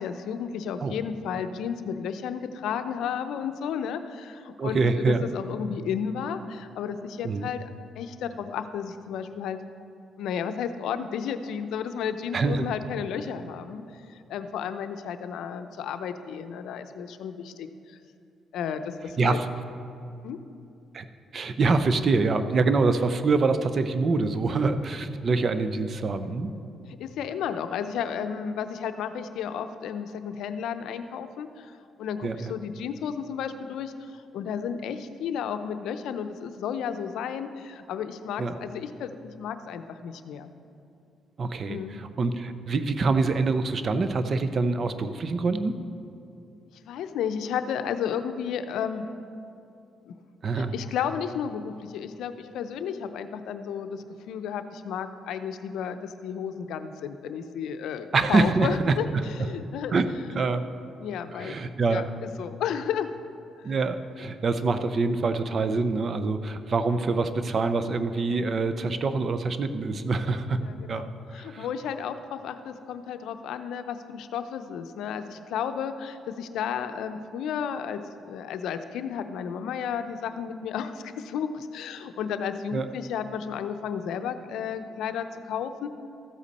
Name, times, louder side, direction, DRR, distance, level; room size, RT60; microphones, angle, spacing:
voice 1, 0.0-7.7 8.0-9.6 10.2-13.8 14.1-18.0 18.5-19.4 20.2-20.4 27.0-40.5 41.7-42.0 46.8-49.1 50.1-50.2 50.5-60.0 60.3-60.4 61.0-61.6 61.9-63.1 63.6-63.7 70.6-71.1 71.3-85.9, left 7 dB, 80° left, 9 dB, 0.5 m, -33 dB
voice 2, 4.6-5.2 7.2-7.5 12.3-12.7 19.2-19.5 20.9-21.1 21.3-26.5 32.2-32.5 38.4-38.6 41.4-45.8 50.4-50.7 58.1-59.2 59.9-60.6 61.3-62.0 63.6-70.6 70.9-71.1 71.3-71.7 82.7-82.9, right 3 dB, 45° right, 11 dB, 0.6 m, -25 dB
14.0 x 8.2 x 4.2 m, 2.7 s
cardioid pair, 90°, 0 cm